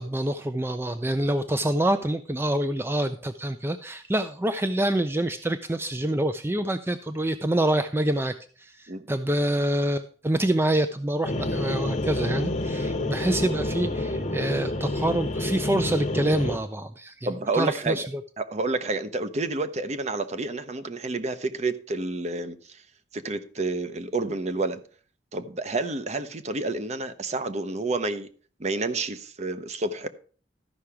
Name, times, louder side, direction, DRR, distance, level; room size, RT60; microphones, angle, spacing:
voice 1, 0.0-18.0, right 1 dB, 15° right, 0.4 m, -26 dB
sound 1, 11.2-16.6, left 1 dB, 45° left, 1.0 m, -28 dB
voice 2, 17.3-18.0 18.4-22.8 23.1-24.8 25.3-28.3 28.6-30.1, right 3 dB, 40° right, 0.8 m, -29 dB
13.5 x 5.7 x 4.8 m
head